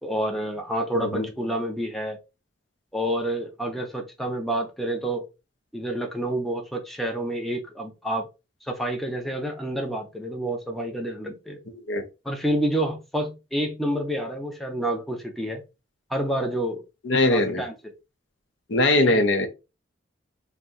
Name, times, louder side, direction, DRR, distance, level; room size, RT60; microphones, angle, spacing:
voice 1, 0.0-2.2 2.9-5.2 5.7-8.3 8.6-11.6 12.2-15.6 16.1-16.8 17.3-17.9 19.1-19.2, right 1 dB, ahead, 0.5 m, -28 dB
voice 2, 0.9-1.3 11.9-12.0 17.0-17.6 18.7-19.5, left 2 dB, 70° left, 0.6 m, -21 dB
2.6 x 2.2 x 3.7 m
head